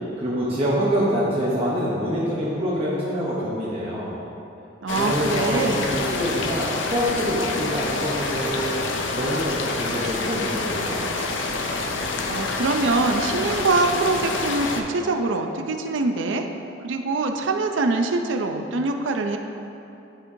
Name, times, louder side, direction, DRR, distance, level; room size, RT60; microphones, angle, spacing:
voice 1, 0.2-4.2 4.9-8.8 9.1-11.1, equal, 30° right, -8 dB, 0.8 m, -25 dB
voice 2, 4.8-5.8 12.3-16.5 16.8-19.4, right 3 dB, 75° right, 5 dB, 0.5 m, -24 dB
sound 1, 4.9-14.8, left 3 dB, 75° left, 0.5 m, -27 dB
11.0 x 4.4 x 2.7 m, 2.8 s
head